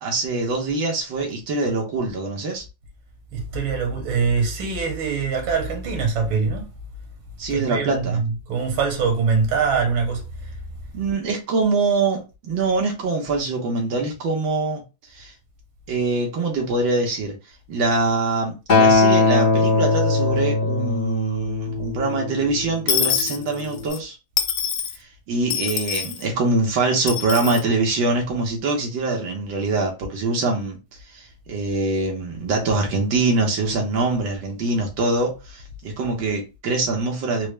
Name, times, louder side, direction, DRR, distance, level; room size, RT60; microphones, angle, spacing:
voice 1, 0.0-2.6 7.4-8.2 10.9-14.8 15.1-15.3 15.9-17.4 17.7-24.2 25.0-30.8 31.1-37.5, right 3 dB, 70° right, 1.8 m, -24 dB
voice 2, 3.3-6.7 7.5-10.2, right 5 dB, 90° right, 1.9 m, -23 dB
Acoustic guitar, 18.7-23.0 23.8-23.9, left 3 dB, 45° left, 0.6 m, -20 dB
Dishes pots and pans / Coin (dropping), 22.9-24.0 24.4-25.0 25.5-26.2 27.1-27.6, left 8 dB, 80° left, 0.8 m, -24 dB
4.5 x 2.1 x 3.2 m
omnidirectional pair, 2.2 m